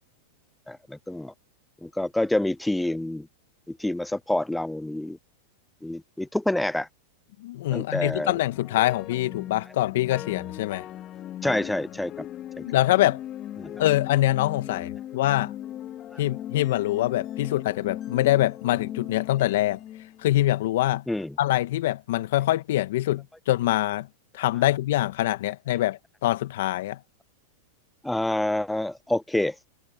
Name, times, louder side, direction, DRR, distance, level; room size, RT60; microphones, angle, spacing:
voice 1, 0.7-1.3 1.8-3.3 3.7-5.2 5.8-6.9 7.7-8.4 11.4-12.3 12.6-12.7 21.1-21.3 28.0-29.6, left 1 dB, 5° left, 0.6 m, -27 dB
voice 2, 7.4-10.8 12.6-13.2 13.8-15.5 16.2-19.8 20.2-21.0 21.4-24.1 24.3-27.0, left 15 dB, 70° left, 1.9 m, -24 dB
sound 1, 8.4-20.7, left 12 dB, 35° left, 4.7 m, -38 dB
hypercardioid pair, 115°, 0 cm